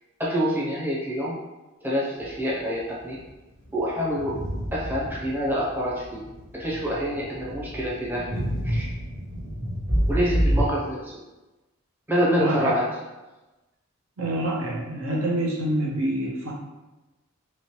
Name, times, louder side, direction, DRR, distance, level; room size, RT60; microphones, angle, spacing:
voice 1, 0.2-1.4 1.8-3.2 3.7-4.4 4.7-6.3 6.5-8.9 10.1-11.1 12.1-12.9, equal, 10° right, -6 dB, 0.6 m, -26 dB
sound 1, 2.2-2.4 3.1-3.3 3.6-10.6, equal, 45° right, 1.0 m, -28 dB
voice 2, 12.4-12.8 14.2-16.5, right 1 dB, 70° right, -2 dB, 0.8 m, -26 dB
3.1 x 2.9 x 2.9 m, 1.1 s
head